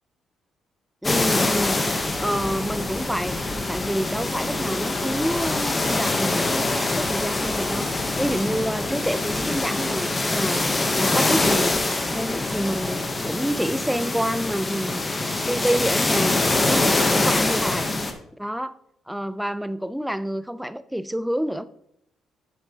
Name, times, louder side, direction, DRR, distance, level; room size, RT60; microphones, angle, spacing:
sound 1, 1.0-18.1, left 2 dB, 20° left, 0.8 m, -24 dB
voice 1, 1.0-16.4 16.7-17.9 18.4-18.7 19.1-21.6, equal, ahead, 13 dB, 0.3 m, -28 dB
9.3 x 8.1 x 2.8 m, 0.75 s
cardioid pair, 145°, 0 cm